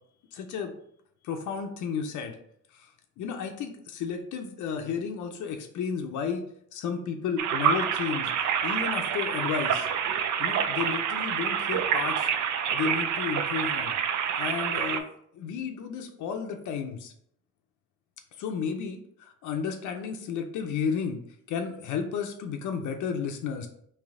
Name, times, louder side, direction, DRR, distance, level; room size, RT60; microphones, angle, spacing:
voice 1, 0.3-0.7 1.2-2.4 2.7-2.9 3.2-6.4 6.7-8.3 8.6-9.9 10.4-12.3 12.7-14.0 14.4-15.0 15.3-17.1 18.4-21.2 21.5-23.7, left 6 dB, 75° left, 4 dB, 0.5 m, -32 dB
sound 1, 7.4-15.0, right 8 dB, 70° right, 0.5 m, -27 dB
3.2 x 3.0 x 3.6 m, 0.69 s
cardioid pair, 90°, 30 cm